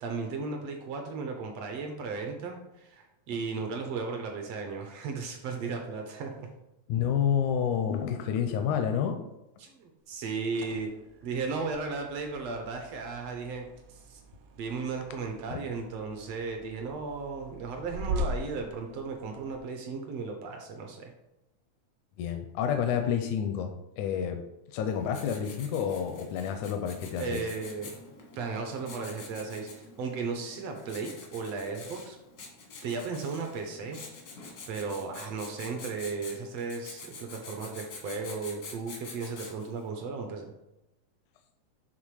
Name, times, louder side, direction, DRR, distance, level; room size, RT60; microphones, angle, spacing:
voice 1, 0.0-6.5 9.6-10.9 11.2-14.2 14.6-21.1 27.2-27.9 28.4-32.2 32.8-34.0 34.7-40.5, right 4 dB, 70° right, 3 dB, 1.7 m, -35 dB
voice 2, 6.9-9.2 15.5-15.6 22.2-24.4 24.7-27.4, left 8 dB, 85° left, 5 dB, 2.0 m, -29 dB
sound 1, 10.2-19.6, right 1 dB, 85° right, 1.3 m, -41 dB
Writing, 24.9-39.8, left 3 dB, 65° left, 0.9 m, -47 dB
7.5 x 3.5 x 4.8 m, 0.94 s
omnidirectional pair, 3.5 m